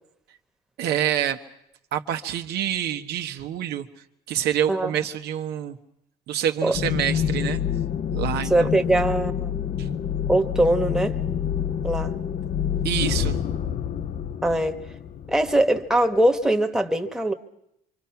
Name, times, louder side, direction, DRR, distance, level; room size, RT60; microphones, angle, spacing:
voice 1, 0.8-1.4 1.9-3.9 4.3-5.8 6.3-7.6 8.1-8.8 9.8-9.9 12.8-13.4, right 10 dB, 75° right, 6 dB, 1.3 m, -27 dB
sound 1, 6.7-16.0, left 8 dB, 50° left, 0.9 m, -27 dB
voice 2, 8.5-9.5 10.3-11.2 11.8-12.2 14.4-14.8 15.3-17.3, right 1 dB, 5° right, 4 dB, 1.4 m, -21 dB
26.0 x 24.5 x 5.9 m, 0.79 s
cardioid pair, 110°, 17 cm